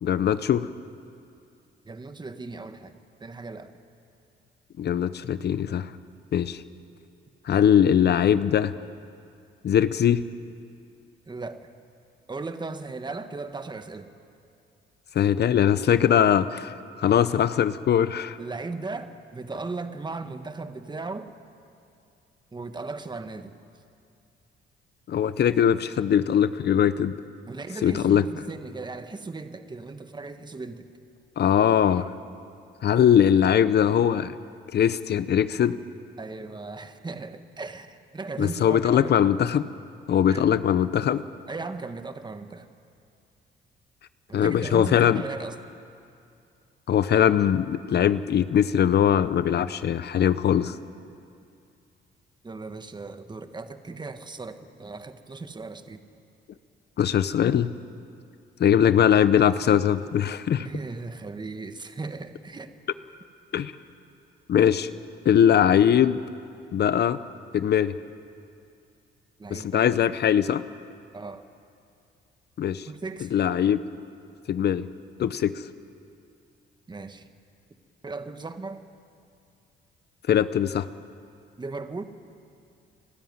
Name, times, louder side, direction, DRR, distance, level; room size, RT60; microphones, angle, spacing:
voice 1, 0.0-0.7 4.8-5.9 6.3-6.6 7.5-8.7 9.6-10.2 15.1-16.7 17.0-18.4 25.1-27.1 27.8-28.2 31.4-32.1 32.8-34.3 34.7-35.8 38.4-39.7 40.1-41.2 44.3-45.2 46.9-50.8 57.0-57.7 58.6-60.7 63.5-63.7 64.5-64.9 65.2-66.2 66.7-67.2 67.5-67.9 69.5-70.6 72.6-72.9 73.3-73.8 74.5-74.9 75.2-75.6 80.3-80.9, left 9 dB, 55° left, 14 dB, 0.7 m, -21 dB
voice 2, 1.8-3.7 11.3-11.7 12.3-14.1 18.4-21.3 22.5-23.5 27.5-30.9 31.8-32.0 36.2-39.1 40.3-40.5 41.5-42.7 44.3-45.6 52.4-56.0 60.6-62.7 69.4-69.8 71.1-71.5 72.8-73.3 76.9-77.3 78.0-78.8 81.6-82.0, right 3 dB, 20° right, 8 dB, 1.4 m, -37 dB
29.5 x 13.0 x 9.5 m, 2.5 s
cardioid pair, 90°, 20 cm